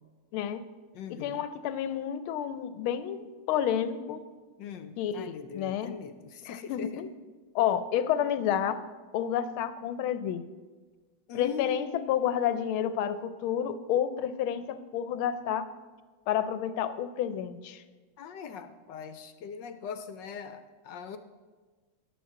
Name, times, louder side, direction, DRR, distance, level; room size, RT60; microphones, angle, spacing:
voice 1, 0.3-0.6 1.1-4.2 5.0-6.0 6.4-7.1 7.5-8.8 9.1-10.4 11.3-15.7 16.3-17.8, left 9 dB, 90° left, 12 dB, 1.5 m, -30 dB
voice 2, 0.9-1.4 4.6-6.9 11.3-12.3 18.2-21.2, left 6 dB, 70° left, 9 dB, 1.2 m, -41 dB
14.5 x 11.0 x 3.7 m, 1.4 s
omnidirectional pair, 2.2 m